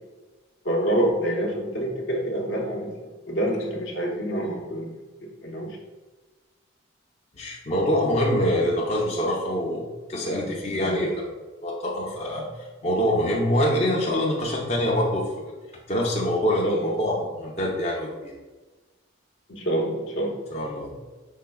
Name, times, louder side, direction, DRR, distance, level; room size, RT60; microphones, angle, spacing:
voice 1, 0.6-4.9 5.2-5.8 10.2-10.5 10.8-11.1 16.6-16.9 19.5-20.4, right 1 dB, 65° left, 0 dB, 0.8 m, -27 dB
voice 2, 7.4-11.1 11.6-15.5 15.9-18.3 20.5-20.9, equal, 35° left, -3 dB, 0.5 m, -25 dB
5.6 x 4.1 x 2.2 m, 1.2 s
head